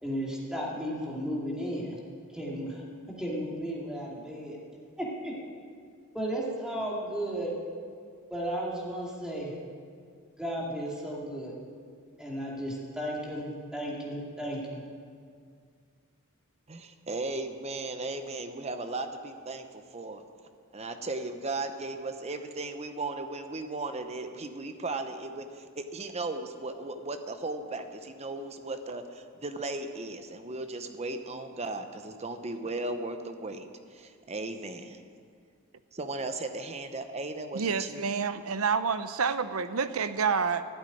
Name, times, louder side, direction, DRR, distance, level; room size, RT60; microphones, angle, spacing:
voice 1, 0.0-2.0 2.3-2.8 3.2-4.6 5.0-5.3 6.1-7.5 8.3-9.5 10.4-11.5 12.2-14.8, equal, 5° right, -4 dB, 2.4 m, -34 dB
voice 2, 16.7-20.2 20.7-35.0 35.9-38.0, right 2 dB, 30° right, 8 dB, 0.9 m, -36 dB
voice 3, 37.5-40.7, right 5 dB, 80° right, 12 dB, 0.7 m, -28 dB
13.0 x 8.2 x 9.9 m, 2.1 s
head